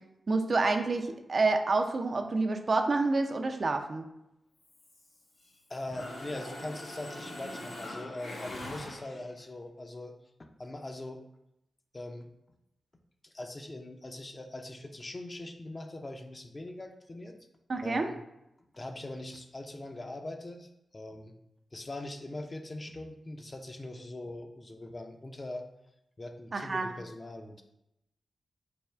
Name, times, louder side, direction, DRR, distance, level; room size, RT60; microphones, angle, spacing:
voice 1, 0.3-4.1 17.7-18.1 26.5-26.9, right 3 dB, 55° right, 5 dB, 0.4 m, -28 dB
Mechanisms, 4.6-5.6 5.9-9.4, left 1 dB, 85° left, 0.8 m, -43 dB
voice 2, 5.7-10.1 10.6-11.2 11.9-12.3 13.2-17.4 17.8-18.2 18.7-21.3 21.7-25.6 26.2-27.6, left 2 dB, 40° left, 4 dB, 0.5 m, -41 dB
3.4 x 2.3 x 4.3 m, 0.86 s
supercardioid pair, 40°, 0 cm